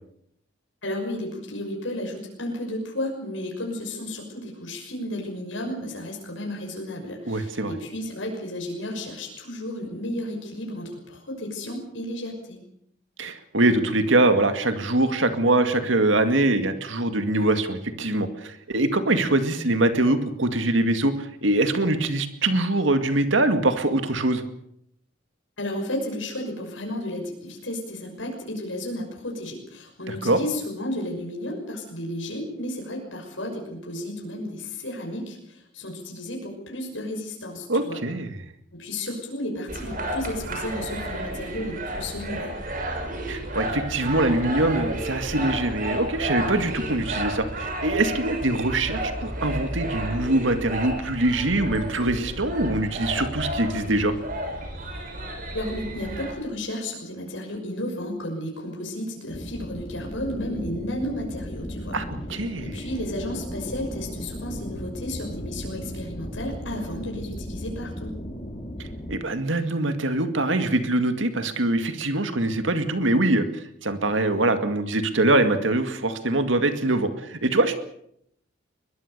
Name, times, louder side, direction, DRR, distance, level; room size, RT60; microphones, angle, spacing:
voice 1, 0.8-12.6 25.6-38.0 38.7-42.5 55.5-62.0 62.6-68.2, left 1 dB, 75° left, 1 dB, 6.2 m, -33 dB
voice 2, 7.3-7.7 13.2-24.4 30.1-30.4 37.7-38.3 43.3-54.1 61.9-62.7 68.8-77.7, right 2 dB, 75° right, 8 dB, 2.1 m, -23 dB
sound 1, 39.7-56.3, right 1 dB, 45° right, 6.3 m, -32 dB
sound 2, 59.3-69.2, equal, 30° left, 3.3 m, -36 dB
22.0 x 22.0 x 6.8 m, 0.71 s
head